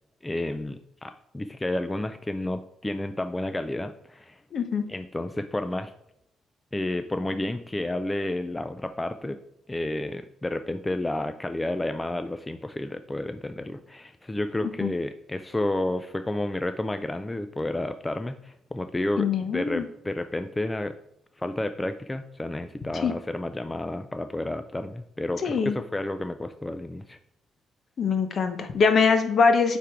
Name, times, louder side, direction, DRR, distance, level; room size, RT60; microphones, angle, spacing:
voice 1, 0.2-4.4 4.9-5.9 6.7-9.4 9.7-20.9 21.4-27.2, left 1 dB, 15° left, 9 dB, 0.4 m, -31 dB
voice 2, 4.5-4.8 14.6-14.9 19.2-19.8 23.0-23.1 25.4-25.7 28.0-29.8, left 5 dB, 50° left, 8 dB, 0.9 m, -23 dB
8.3 x 3.6 x 4.5 m, 0.78 s
cardioid pair, 90°, 0 cm